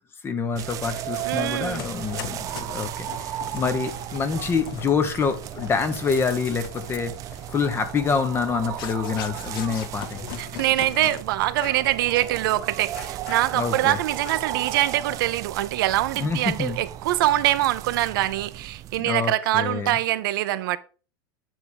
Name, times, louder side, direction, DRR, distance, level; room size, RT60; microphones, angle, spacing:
voice 1, 0.2-7.1 7.5-10.4 13.5-14.0 16.1-16.8 19.0-20.0, left 5 dB, 20° left, 1.0 m, -26 dB
sound 1, 0.6-11.2 11.5-11.9 12.3-12.4 12.9-13.8 14.2-14.6, left 11 dB, 70° left, 0.7 m, -41 dB
sound 2, 0.6-19.0, right 13 dB, 30° right, 0.3 m, -35 dB
voice 2, 1.2-1.8 10.4-20.8, right 15 dB, 70° right, 0.6 m, -24 dB
9.2 x 3.5 x 5.2 m
supercardioid pair, 140°, 12 cm